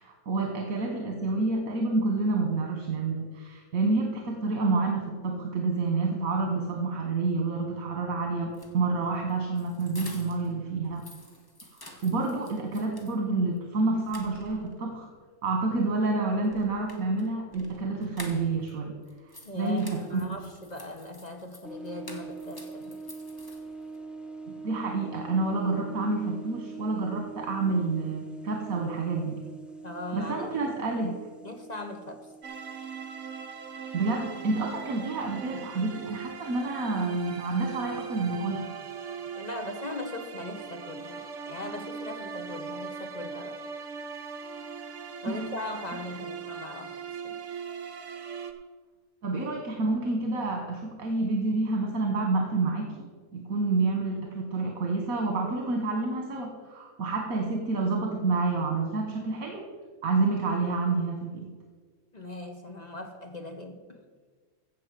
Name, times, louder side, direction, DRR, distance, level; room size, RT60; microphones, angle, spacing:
voice 1, 0.0-11.0 12.0-15.1 15.4-18.9 19.5-20.0 24.5-29.4 30.1-31.1 33.9-38.6 45.2-45.5 49.2-52.9 53.3-59.7 60.0-61.5, right 3 dB, 75° right, 2 dB, 1.8 m, -28 dB
sound 1, 8.4-10.5 10.8-13.2 13.6-13.7 14.0-14.8 16.4-18.7 19.0-24.0, left 1 dB, 15° left, 1.3 m, -49 dB
voice 2, 19.4-23.0 29.8-30.7 31.0-32.3 35.5-35.7 39.4-43.6 45.2-47.4 62.1-64.0, left 2 dB, 35° left, 5 dB, 0.9 m, -39 dB
sound 2, 21.6-35.8, right 4 dB, ahead, 0.6 m, -44 dB
sound 3, 32.4-48.5, right 6 dB, 60° right, 1.3 m, -39 dB
15.0 x 5.2 x 7.6 m, 1.5 s
omnidirectional pair, 1.5 m